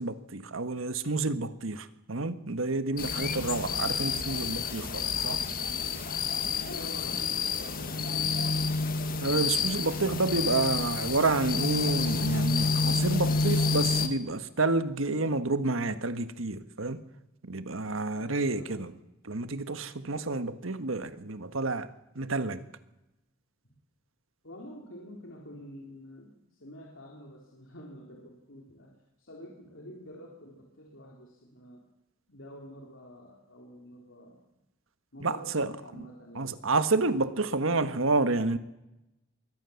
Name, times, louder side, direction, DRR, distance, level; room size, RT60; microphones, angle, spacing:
voice 1, 0.0-5.4 9.2-17.0 17.4-18.9 19.2-21.9 22.1-22.7 35.2-35.7 35.9-36.0 36.3-38.6, right 3 dB, 75° right, 1.5 m, -29 dB
sound 1, 3.0-14.1, left 4 dB, 45° left, 1.7 m, -29 dB
voice 2, 6.6-8.6 18.1-18.8 23.6-23.7 24.4-28.9 29.2-31.8 32.3-34.4 35.1-36.5, equal, 65° left, 3.7 m, -48 dB
23.0 x 17.5 x 7.1 m
head